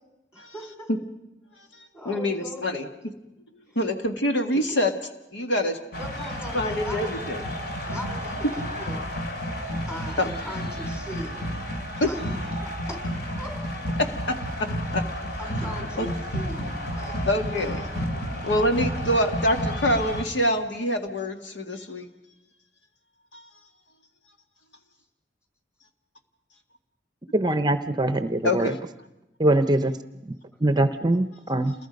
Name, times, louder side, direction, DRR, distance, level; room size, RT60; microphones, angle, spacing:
voice 1, 0.3-0.9 1.9-2.8 3.6-3.8 4.5-4.8 6.0-7.5 7.9-9.0 9.9-11.5 12.1-12.2 12.6-13.1 13.4-13.6 15.4-17.1 17.6-18.2, equal, 15° left, 3 dB, 4.8 m, -40 dB
voice 2, 2.1-2.9 3.8-4.9 5.3-5.8 6.5-7.4 9.7-9.8 10.2-10.3 12.0-12.1 14.3-14.7 14.9-15.0 15.6-15.7 16.0-16.1 17.2-17.8 18.4-22.1 23.3-23.4 28.4-28.8, left 1 dB, 85° left, 5 dB, 1.8 m, -25 dB
sound 1, 5.9-20.2, equal, 60° left, 3.1 m, -31 dB
voice 3, 27.3-28.7 29.4-29.9 30.6-31.7, right 1 dB, 25° right, 10 dB, 0.7 m, -22 dB
29.0 x 21.5 x 5.3 m, 0.95 s
head